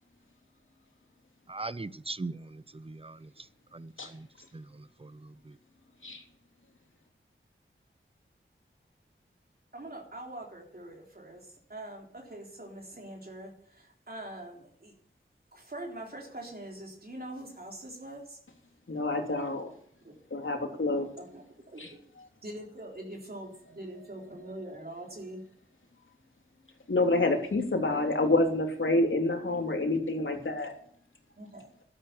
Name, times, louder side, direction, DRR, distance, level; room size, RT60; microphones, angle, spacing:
voice 1, 1.5-3.3 3.7-4.3 4.5-5.5, right 3 dB, 25° right, 0.7 m, -40 dB
voice 2, 9.7-14.9 15.5-18.4 20.0-20.1 20.6-20.8 21.2-22.0 22.4-25.4 31.4-31.7, right 1 dB, 45° right, 3.6 m, -43 dB
voice 3, 18.9-19.7 20.3-21.1 21.8-21.9 22.2-22.3 26.9-30.7, left 2 dB, 70° left, 3.2 m, -28 dB
12.0 x 11.0 x 7.1 m
wide cardioid pair, 75°, 21 cm